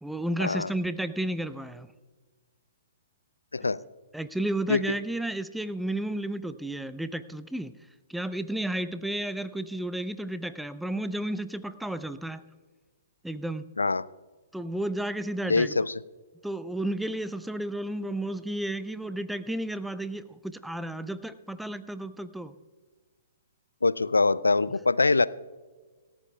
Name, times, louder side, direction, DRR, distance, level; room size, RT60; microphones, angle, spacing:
voice 1, 0.0-1.9 3.6-3.7 4.1-7.8 8.1-12.4 13.2-13.6 14.5-15.8 16.4-22.6, right 1 dB, ahead, 13 dB, 0.6 m, -32 dB
voice 2, 15.5-15.9 23.8-25.3, left 3 dB, 75° left, 19 dB, 0.4 m, -23 dB
27.0 x 14.0 x 2.3 m, 1.4 s
figure-of-eight pair, 115°, 0 cm